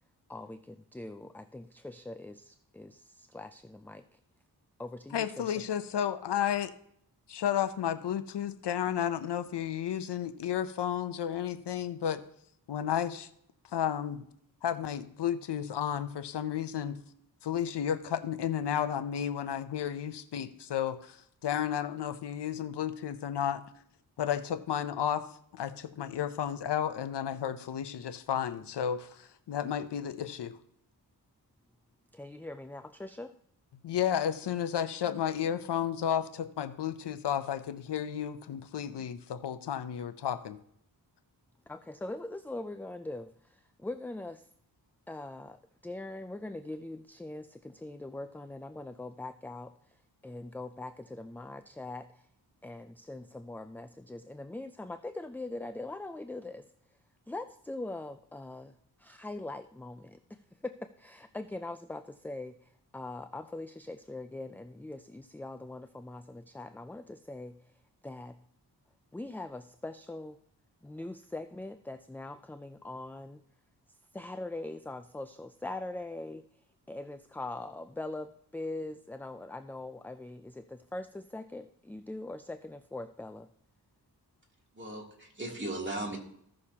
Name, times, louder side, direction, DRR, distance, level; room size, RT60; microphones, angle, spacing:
voice 1, 0.3-4.2 4.8-5.6 32.1-33.4 41.7-44.5 45.1-52.3 52.6-56.7 57.3-67.7 68.0-68.4 69.1-70.4 70.8-73.4 74.1-76.4 76.9-83.5, left 2 dB, 5° left, 10 dB, 0.3 m, -42 dB
voice 2, 5.1-6.7 7.3-12.2 12.7-13.3 13.7-14.2 14.6-17.0 17.4-21.2 21.4-23.6 24.2-25.3 25.5-30.6 33.8-40.6, left 9 dB, 75° left, 11 dB, 0.7 m, -32 dB
voice 3, 84.7-86.2, right 1 dB, 25° right, -2 dB, 2.9 m, -37 dB
15.5 x 6.5 x 2.9 m, 0.69 s
cardioid pair, 65°, 41 cm